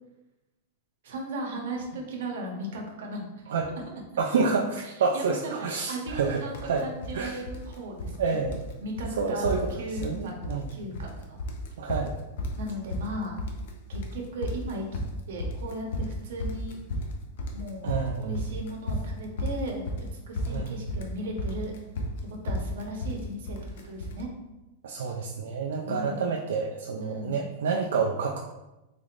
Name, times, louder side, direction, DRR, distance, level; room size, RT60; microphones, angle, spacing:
voice 1, 1.0-3.2 4.8-8.4 8.8-10.3 10.7-11.4 12.5-13.4 13.9-15.0 15.3-16.8 17.5-19.9 20.3-21.7 22.3-23.6 23.8-24.3 25.8-26.3 26.9-27.5, right 1 dB, 65° right, 1 dB, 0.9 m, -36 dB
voice 2, 4.2-6.9 7.1-7.4 8.2-8.6 9.2-9.6 10.0-10.7 11.8-12.1 17.8-18.4 20.5-20.7 24.8-28.4, right 5 dB, 85° right, 0 dB, 0.4 m, -28 dB
sound 1, 6.1-6.2 6.5-7.2 7.5-8.2 8.5-8.7 9.0-9.1 9.4-10.2 10.4-11.1 11.4-24.2, left 1 dB, 60° left, 0.5 m, -33 dB
3.6 x 3.5 x 2.4 m, 0.99 s
supercardioid pair, 180°, 0 cm